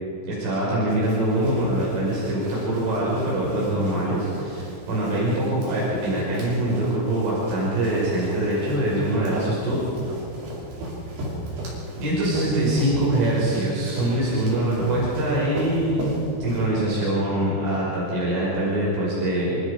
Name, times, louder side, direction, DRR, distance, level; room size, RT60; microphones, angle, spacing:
voice 1, 0.3-9.8 12.0-19.6, right 1 dB, 80° right, -6 dB, 8.2 m, -24 dB
Run, 0.9-17.0, right 1 dB, 65° right, 7.6 m, -36 dB
27.5 x 27.5 x 5.2 m, 2.5 s
omnidirectional pair, 5.3 m